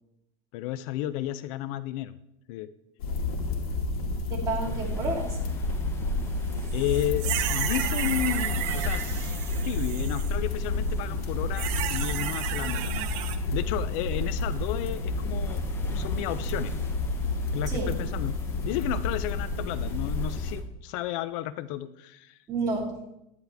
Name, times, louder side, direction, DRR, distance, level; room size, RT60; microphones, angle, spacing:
voice 1, 0.5-2.1 2.5-2.7 4.6-4.9 6.7-9.3 9.6-13.1 13.5-15.6 15.9-16.7 17.5-18.4 18.6-22.4, left 13 dB, 60° left, 15 dB, 0.5 m, -33 dB
sound 1, 3.0-20.5, left 2 dB, 85° left, 2.1 m, -30 dB
voice 2, 4.3-5.3 17.7-17.9 22.5-23.0, right 3 dB, 20° right, -4 dB, 3.3 m, -30 dB
sound 2, 4.6-20.6, left 2 dB, 15° left, 0.9 m, -48 dB
sound 3, 6.7-10.3 11.5-13.4, right 12 dB, 60° right, 0.9 m, -33 dB
10.5 x 9.9 x 3.4 m, 0.86 s
supercardioid pair, 145°, 18 cm